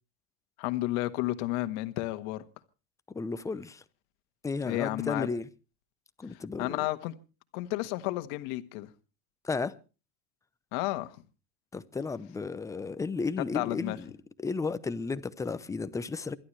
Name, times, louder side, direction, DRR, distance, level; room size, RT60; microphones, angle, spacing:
voice 1, 0.6-2.4 4.6-5.3 6.6-7.1 7.5-8.9 10.7-11.1 13.5-14.0, left 18 dB, 60° left, 1.5 m, -32 dB
voice 2, 3.1-3.8 4.4-5.5 6.2-6.9 9.4-9.7 11.7-14.1 14.4-16.4, left 4 dB, 10° left, 0.7 m, -33 dB
27.5 x 11.5 x 3.2 m
supercardioid pair, 140°, 36 cm